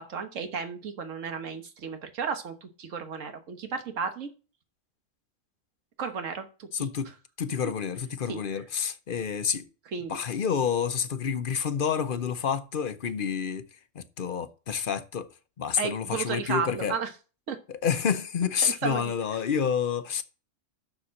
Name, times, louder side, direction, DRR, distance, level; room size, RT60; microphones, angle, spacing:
voice 1, 0.0-4.3 6.0-6.9 8.3-8.4 9.9-10.2 15.8-17.1 17.5-17.6 18.6-19.1, right 5 dB, 80° right, 1.6 m, -33 dB
voice 2, 6.7-7.1 7.4-9.7 10.1-13.7 13.9-15.3 15.6-16.9 17.7-20.2, left 7 dB, 50° left, 0.8 m, -29 dB
7.0 x 6.7 x 6.4 m
omnidirectional pair, 1.3 m